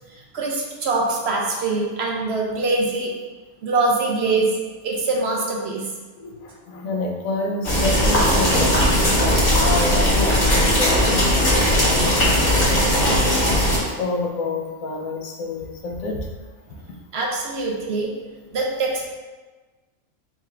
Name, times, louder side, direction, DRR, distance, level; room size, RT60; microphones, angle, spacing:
voice 1, 0.3-3.1 3.6-4.5 4.8-5.9 17.1-18.1 18.5-19.1, right 3 dB, 60° right, -1 dB, 0.8 m, -23 dB
voice 2, 6.2-9.0 9.6-13.2 13.8-16.3, left 2 dB, 90° left, 1 dB, 1.0 m, -28 dB
sound 1, 7.6-13.8, equal, 45° left, 1.3 m, -18 dB
3.8 x 2.4 x 4.2 m, 1.3 s
omnidirectional pair, 1.4 m